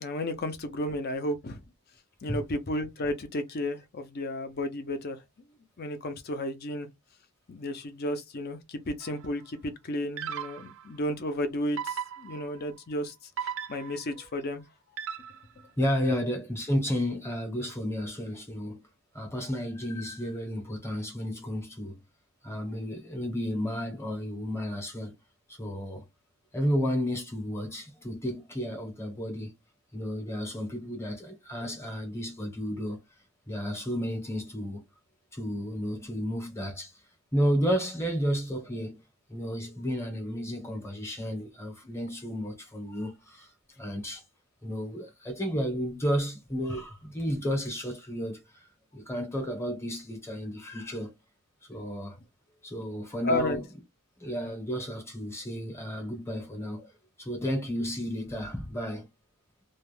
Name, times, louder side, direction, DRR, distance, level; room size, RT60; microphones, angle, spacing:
voice 1, 0.0-1.6 2.2-5.2 5.8-6.9 7.5-13.1 13.4-14.6 16.0-16.2 53.2-53.6, left 1 dB, 45° left, 0.5 m, -33 dB
sound 1, 9.0-9.3 10.2-10.9 11.8-12.6 13.4-14.2 15.0-15.6, right 8 dB, 60° right, 0.3 m, -37 dB
voice 2, 15.8-18.8 19.1-22.0 22.4-25.2 25.5-26.0 26.5-29.5 29.9-33.0 33.5-34.9 35.3-36.9 37.3-39.0 39.3-43.5 43.8-44.2 44.6-48.7 48.9-51.1 51.7-52.2 52.6-53.6 54.2-56.9 57.2-59.1, equal, 10° left, 0.8 m, -32 dB
2.3 x 2.2 x 3.1 m
head